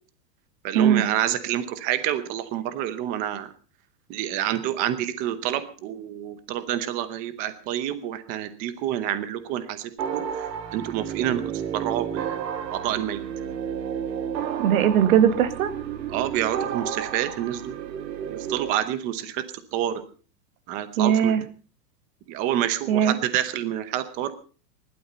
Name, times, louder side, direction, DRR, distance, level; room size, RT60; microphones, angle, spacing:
voice 1, 0.6-3.5 4.1-12.4 12.7-13.2 16.1-17.7 18.3-19.4 19.7-20.0 20.7-21.3 22.3-24.3, right 11 dB, 15° right, 12 dB, 0.8 m, -28 dB
sound 1, 10.0-18.7, right 8 dB, 80° right, 2.3 m, -32 dB
voice 2, 14.6-15.7 21.0-21.4 22.9-23.2, right 9 dB, 55° right, 11 dB, 2.2 m, -19 dB
19.5 x 12.0 x 5.4 m, 0.39 s
supercardioid pair, 175°, 49 cm